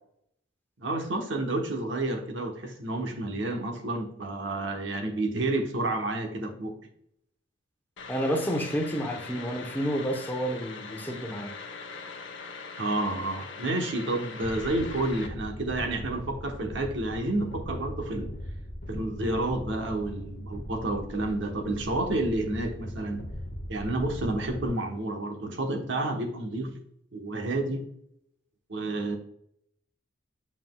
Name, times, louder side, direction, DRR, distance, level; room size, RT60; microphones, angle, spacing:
voice 1, 0.8-6.8 12.8-18.3 18.9-23.2 23.7-26.8 27.1-27.9 28.7-29.2, right 2 dB, 70° right, 1.1 m, -30 dB
sound 1, 8.0-15.3, left 4 dB, 80° left, 0.8 m, -42 dB
voice 2, 8.1-11.5, equal, 10° left, 0.8 m, -30 dB
sound 2, 14.4-24.7, equal, 60° left, 0.9 m, -39 dB
7.4 x 5.8 x 2.3 m
head